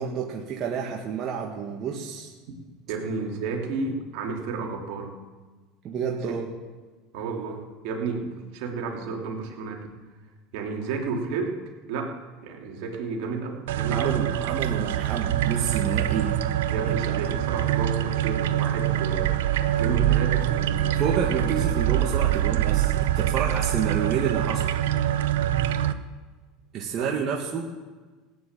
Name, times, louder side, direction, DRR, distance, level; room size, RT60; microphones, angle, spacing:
voice 1, 0.0-2.3 5.8-6.5 13.9-16.4 16.9-17.3 20.9-24.8 26.7-27.6, right 6 dB, 45° right, -1 dB, 1.8 m, -29 dB
voice 2, 2.9-5.1 7.1-9.9 10.5-11.6 11.9-12.1 12.4-14.2 16.7-19.4 19.8-21.5 26.9-27.1, right 4 dB, 70° right, 0 dB, 2.9 m, -32 dB
sound 1, 13.7-25.9, right 12 dB, 85° right, 0.7 m, -24 dB
16.5 x 9.4 x 7.5 m, 1.3 s
supercardioid pair, 105°, 0 cm